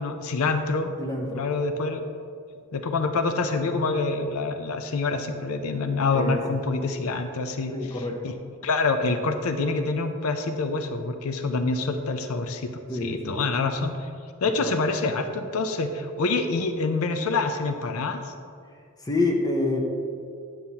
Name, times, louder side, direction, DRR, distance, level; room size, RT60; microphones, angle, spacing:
voice 1, 0.0-0.9 1.3-2.0 2.7-8.3 8.6-14.1 14.4-18.3, left 3 dB, 85° left, 7 dB, 0.5 m, -26 dB
voice 2, 1.0-1.5 6.1-6.4 7.7-8.2 12.9-13.4 14.6-14.8 19.0-19.8, left 2 dB, 20° left, 1 dB, 0.7 m, -27 dB
9.4 x 7.3 x 2.8 m, 2.4 s
head